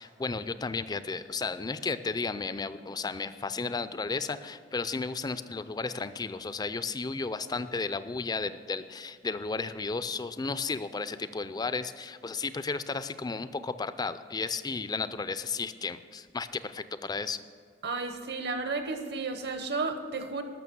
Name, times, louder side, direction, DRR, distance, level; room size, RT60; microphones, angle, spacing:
voice 1, 0.0-17.4, left 4 dB, 20° left, 13 dB, 0.4 m, -33 dB
voice 2, 17.8-20.4, right 3 dB, 60° right, 7 dB, 1.1 m, -33 dB
12.5 x 6.6 x 6.9 m, 2.2 s
head